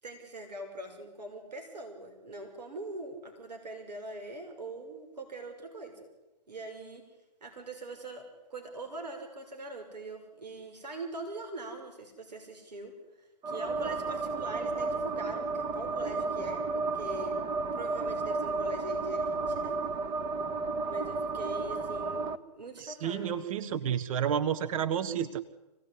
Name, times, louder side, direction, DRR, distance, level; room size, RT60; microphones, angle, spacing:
voice 1, 0.0-6.1 6.5-7.0 7.4-8.2 8.5-17.4 17.7-19.8 20.9-22.3 22.5-23.3, right 2 dB, 85° right, 4 dB, 6.3 m, -42 dB
sound 1, 13.4-22.4, right 3 dB, 20° right, 1.2 m, -32 dB
voice 2, 22.8-25.4, right 9 dB, 55° right, 9 dB, 1.6 m, -30 dB
25.5 x 18.5 x 9.8 m, 1.0 s
hypercardioid pair, 135°, 21 cm